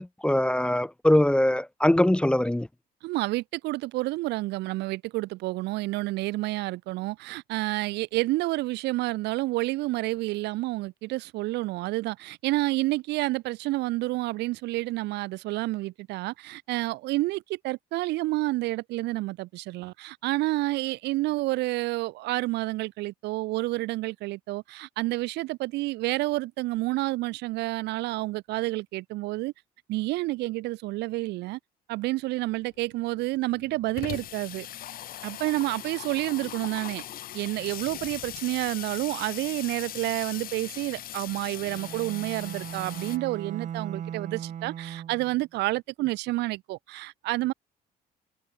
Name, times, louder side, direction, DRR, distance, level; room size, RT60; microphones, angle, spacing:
voice 1, 0.0-2.7, left 1 dB, 5° left, 0.8 m, -22 dB
voice 2, 3.0-29.5 29.9-31.6 31.9-34.7 35.2-37.0 37.3-47.5, right 19 dB, 85° right, 1.8 m, -29 dB
Water tap faucet / Sink (filling or washing), 32.6-32.7 32.9-33.0 33.3-43.2, left 12 dB, 60° left, 1.1 m, -40 dB
Bowed string instrument, 41.6-45.4, right 9 dB, 45° right, 1.9 m, -38 dB
cardioid pair, 110°, 17 cm